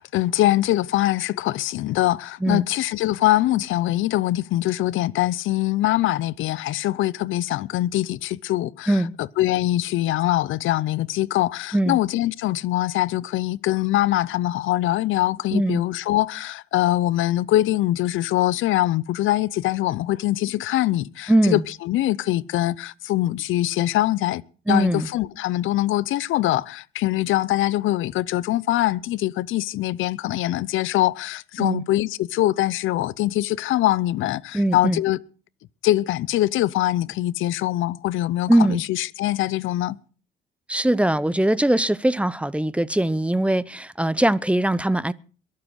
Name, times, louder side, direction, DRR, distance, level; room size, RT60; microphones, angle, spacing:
voice 1, 0.0-24.4 24.7-35.2 35.8-40.0, left 15 dB, 80° left, 0.6 m, -23 dB
voice 2, 15.5-15.8 21.3-21.6 24.7-25.1 31.6-31.8 34.5-35.0 38.5-38.8 40.7-45.1, right 1 dB, 5° right, 0.7 m, -21 dB
22.5 x 7.5 x 6.3 m
cardioid pair, 90°, 20 cm